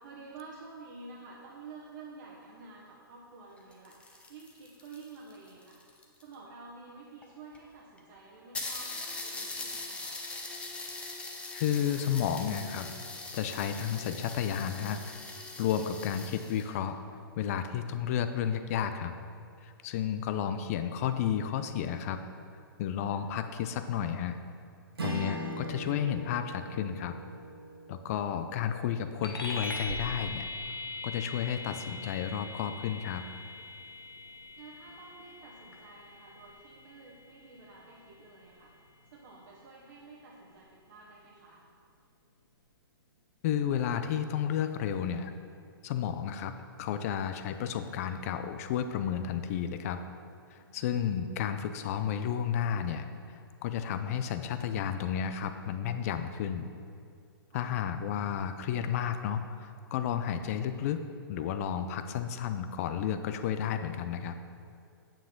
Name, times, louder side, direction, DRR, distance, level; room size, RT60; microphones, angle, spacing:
voice 1, 0.0-5.8 6.2-10.2 23.1-23.2 34.5-41.6 50.6-51.1 57.5-57.7, right 3 dB, 55° right, -4 dB, 1.2 m, -50 dB
sound 1, 3.6-6.3 7.2-7.3 7.5-7.6 8.0-8.1 8.5-16.7, left 3 dB, 10° left, 0.8 m, -41 dB
voice 2, 11.5-12.9 13.3-15.0 15.6-17.0 17.4-19.1 19.6-22.2 22.8-24.4 25.0-27.2 27.9-30.5 31.0-33.2 43.4-45.3 45.8-46.5 46.8-50.0 50.5-56.7 57.5-61.0 61.3-64.4, left 9 dB, 40° left, 9 dB, 0.4 m, -32 dB
Strum, 25.0-29.6, equal, 85° right, 1.4 m, -40 dB
sound 2, 29.2-39.1, left 2 dB, 80° left, 1.2 m, -42 dB
9.0 x 7.3 x 3.7 m, 2.4 s
hypercardioid pair, 125°, 12 cm